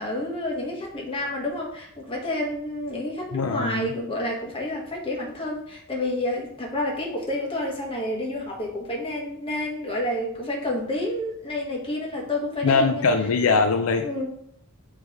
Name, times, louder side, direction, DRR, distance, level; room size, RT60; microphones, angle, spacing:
voice 1, 0.0-13.1 14.0-14.3, left 1 dB, 25° left, -1 dB, 1.5 m, -29 dB
voice 2, 3.3-3.9 12.6-14.3, left 4 dB, 70° left, 6 dB, 0.5 m, -22 dB
7.4 x 3.4 x 4.6 m, 0.68 s
head